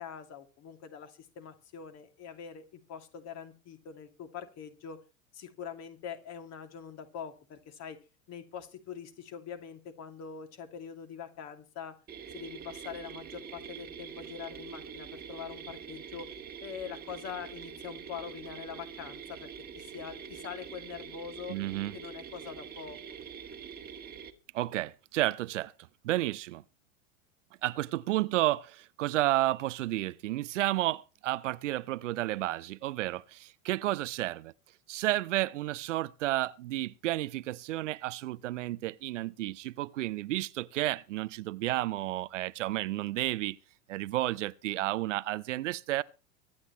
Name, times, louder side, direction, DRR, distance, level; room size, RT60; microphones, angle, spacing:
voice 1, 0.0-5.0 5.3-8.0 8.3-12.0 12.3-16.3 16.6-19.5 19.8-21.6 21.9-23.0, left 7 dB, 40° left, 2.6 m, -43 dB
sound 1, 12.1-24.3, right 7 dB, 25° right, 1.6 m, -45 dB
voice 2, 21.5-21.9 24.5-25.7 26.0-26.6 27.6-34.5 34.9-43.6 43.9-46.0, right 16 dB, 65° right, 0.7 m, -31 dB
24.5 x 9.7 x 3.1 m
figure-of-eight pair, 90°, 40 cm